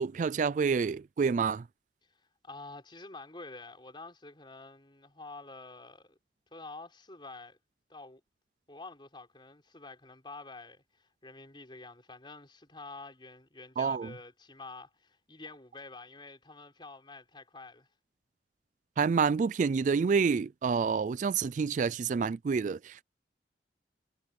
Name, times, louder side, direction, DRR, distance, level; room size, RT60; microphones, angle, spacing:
voice 1, 0.0-1.6 13.8-14.1 19.0-23.0, right 5 dB, 45° right, 0.3 m, -28 dB
voice 2, 2.4-6.2 6.5-7.6 7.9-8.2 8.7-17.9, left 3 dB, 25° left, 4.2 m, -48 dB
head